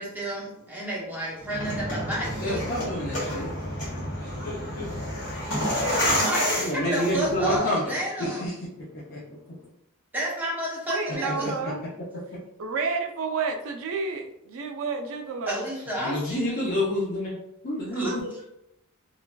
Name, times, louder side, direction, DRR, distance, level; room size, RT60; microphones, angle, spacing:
voice 1, 0.0-2.6 6.2-8.4 10.1-11.7 15.5-16.9 17.9-18.1, right 1 dB, 10° right, -5 dB, 0.7 m, -31 dB
sound 1, 1.4-7.6, equal, 70° left, 1.4 m, -29 dB
voice 2, 2.4-3.5 6.6-7.9 8.2-8.7 9.1-9.2 11.2-11.9 16.0-17.4 17.6-18.3, left 1 dB, 45° left, -7 dB, 0.6 m, -28 dB
voice 3, 3.4-6.8 9.1-9.7, left 3 dB, 90° left, -5 dB, 0.5 m, -44 dB
voice 4, 5.8-7.2 10.9-11.8 12.6-15.7 18.1-18.4, right 4 dB, 65° right, 4 dB, 0.4 m, -31 dB
3.0 x 2.4 x 2.2 m, 0.80 s
head